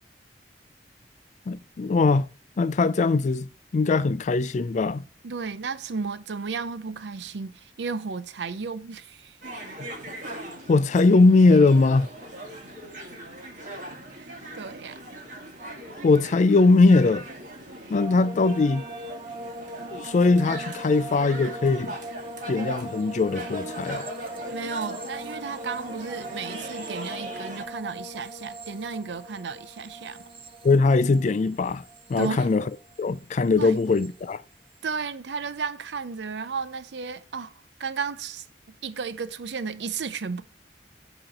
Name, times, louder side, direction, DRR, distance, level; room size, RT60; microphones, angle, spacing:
voice 1, 1.5-2.3 2.6-5.0 10.7-12.1 16.0-17.2 17.9-18.8 19.9-22.0 22.5-24.1 30.6-31.8 32.1-32.6 33.0-34.4, left 3 dB, 45° left, 0.4 m, -20 dB
voice 2, 5.2-9.4 14.1-14.3 14.5-15.0 17.8-18.0 24.5-30.2 32.2-32.5 33.6-33.8 34.8-37.5 37.8-38.5 38.8-40.4, right 5 dB, 80° right, 0.6 m, -33 dB
sound 1, 9.4-27.7, right 1 dB, 45° right, 1.8 m, -40 dB
sound 2, 17.9-33.2 33.4-34.1, right 1 dB, 30° right, 0.7 m, -40 dB
8.8 x 3.1 x 5.2 m
head